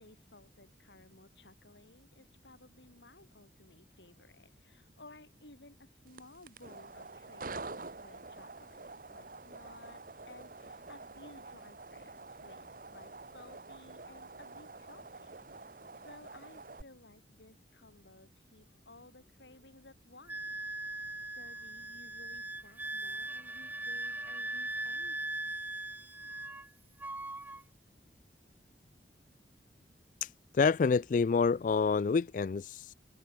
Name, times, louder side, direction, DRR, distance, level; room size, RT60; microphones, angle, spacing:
voice 1, 0.0-15.7 16.0-20.6 20.9-21.1 21.4-26.1, left 2 dB, 80° left, 4.4 m, -58 dB
sound 1, 6.1-16.8, right 3 dB, 50° right, 1.2 m, -47 dB
Wind instrument woodwind instrument, 20.3-26.7 27.0-27.6, right 2 dB, 10° right, 1.4 m, -39 dB
voice 2, 30.2-32.9, left 5 dB, 45° left, 0.3 m, -28 dB
head